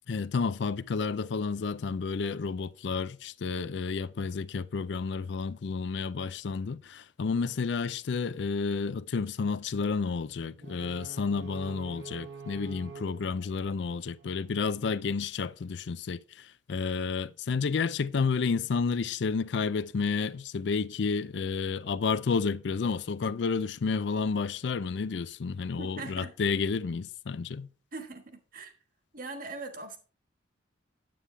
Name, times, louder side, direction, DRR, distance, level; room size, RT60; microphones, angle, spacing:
voice 1, 0.1-16.2 16.7-27.7, left 5 dB, 65° left, 0.4 m, -31 dB
sound 1, 10.6-14.6, right 4 dB, 65° right, 1.1 m, -46 dB
voice 2, 25.8-26.3 27.9-28.7 29.1-30.0, right 3 dB, 45° right, 1.4 m, -41 dB
9.3 x 8.3 x 3.3 m
head